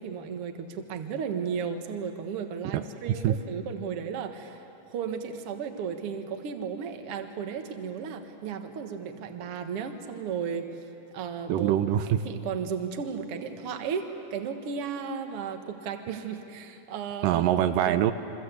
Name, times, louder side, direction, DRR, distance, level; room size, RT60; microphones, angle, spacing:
voice 1, 0.0-10.7 11.1-11.7 12.2-17.4 17.9-18.0, right 6 dB, 50° right, 6 dB, 2.0 m, -34 dB
voice 2, 2.7-3.4 11.5-12.3 17.2-18.1, right 11 dB, 85° right, 9 dB, 2.5 m, -24 dB
29.0 x 24.0 x 8.2 m, 2.9 s
omnidirectional pair, 3.9 m